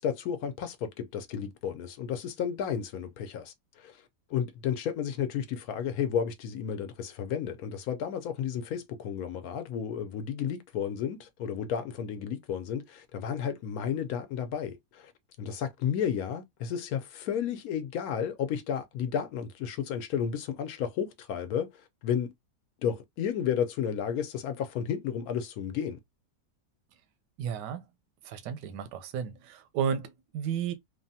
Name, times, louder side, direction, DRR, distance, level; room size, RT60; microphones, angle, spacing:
voice 1, 0.0-4.0 4.3-15.1 15.4-22.3 22.8-26.0, left 8 dB, 70° left, 1.0 m, -32 dB
voice 2, 27.4-27.9 28.2-30.7, right 8 dB, 90° right, 1.2 m, -33 dB
3.2 x 2.2 x 2.6 m
omnidirectional pair, 1.8 m